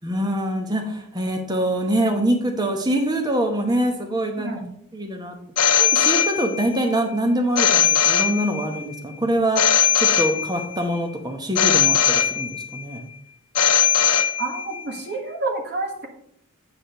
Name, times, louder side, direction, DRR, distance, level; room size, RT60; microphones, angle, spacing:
voice 1, 0.0-4.5 4.9-5.4 5.8-9.6 10.0-13.0, right 1 dB, 20° right, 3 dB, 1.0 m, -24 dB
voice 2, 4.4-4.7 14.4-16.1, right 3 dB, 50° right, 2 dB, 1.6 m, -29 dB
Telephone, 5.6-6.8 7.6-8.8 9.6-10.8 11.6-12.8 13.6-14.8, left 9 dB, 85° left, 0.6 m, -19 dB
8.7 x 5.0 x 5.0 m, 0.69 s
head